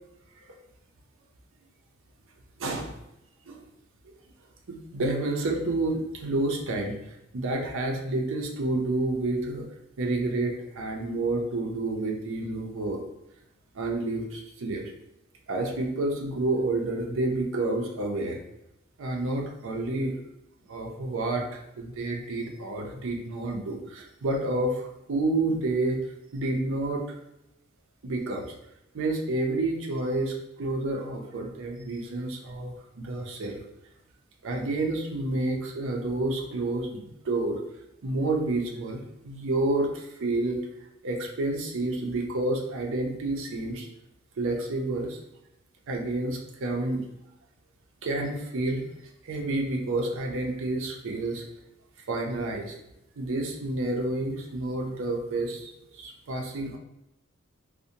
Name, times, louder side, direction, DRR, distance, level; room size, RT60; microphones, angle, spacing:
voice 1, 2.6-2.9 3.5-3.6 4.7-9.7 10.0-13.0 13.7-14.9 15.5-18.4 19.0-20.1 20.7-26.0 26.3-27.2 28.0-28.5 28.9-33.6 34.4-37.6 38.0-40.7 41.0-43.9 44.4-45.2 45.9-47.0 48.0-48.9 49.2-51.4 52.1-52.8 53.2-56.8, right 2 dB, 65° right, 1 dB, 0.5 m, -29 dB
2.6 x 2.1 x 2.7 m, 0.86 s
head